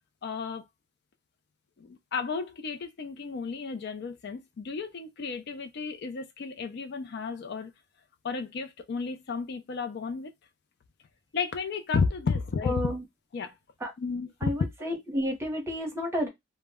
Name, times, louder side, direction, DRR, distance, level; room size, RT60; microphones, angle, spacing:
voice 1, 0.2-0.6 1.8-7.7 8.2-10.3 11.3-12.8 13.3-13.5 14.0-14.5, left 5 dB, 55° left, 0.4 m, -32 dB
voice 2, 12.6-13.0 13.8-13.9 14.4-16.3, equal, 15° right, 0.8 m, -31 dB
2.1 x 2.0 x 3.4 m
head